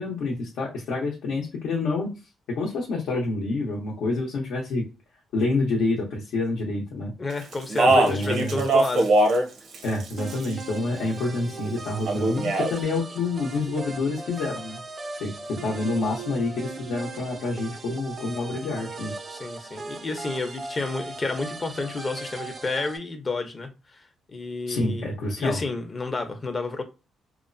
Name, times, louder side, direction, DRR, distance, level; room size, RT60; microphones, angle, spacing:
voice 1, 0.0-2.2 2.5-4.8 5.3-7.1 8.1-8.6 9.8-14.8 15.2-19.1 24.7-25.6, left 3 dB, 75° left, 0.8 m, -28 dB
voice 2, 7.2-9.1 19.3-25.1 25.4-26.8, left 3 dB, 35° left, 0.7 m, -30 dB
Speech, 7.5-9.5 9.7-10.6 12.1-12.7, right 2 dB, 70° right, 0.7 m, -21 dB
sound 1, 10.2-23.0, right 3 dB, 40° right, 0.4 m, -38 dB
2.9 x 2.0 x 2.6 m
cardioid pair, 90°, 0 cm